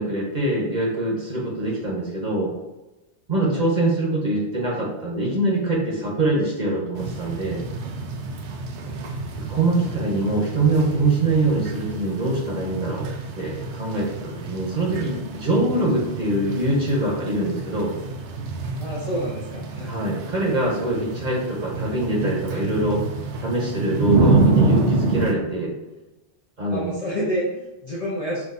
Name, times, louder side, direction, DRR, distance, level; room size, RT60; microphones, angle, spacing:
voice 1, 0.0-2.5 3.3-7.6 9.3-13.1 13.4-17.9 19.9-23.0 23.4-25.7 26.6-26.9, right 2 dB, 45° right, -3 dB, 1.0 m, -23 dB
sound 1, 7.0-25.3, right 3 dB, 85° right, 0.9 m, -27 dB
voice 2, 18.8-19.9 26.7-28.5, equal, 40° left, -6 dB, 0.7 m, -28 dB
6.1 x 2.6 x 2.6 m, 1.0 s
omnidirectional pair, 1.1 m